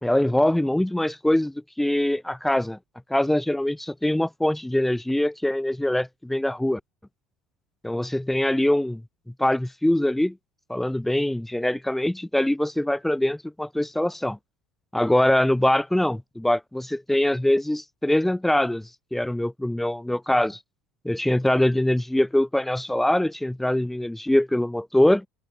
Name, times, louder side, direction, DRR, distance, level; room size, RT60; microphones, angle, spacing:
voice 1, 0.0-2.8 3.1-6.8 7.8-9.0 9.4-10.3 10.7-14.4 14.9-18.8 19.1-20.6 21.0-25.3, left 1 dB, 5° left, 2.6 m, -23 dB
open air
figure-of-eight pair, 65°, 4 cm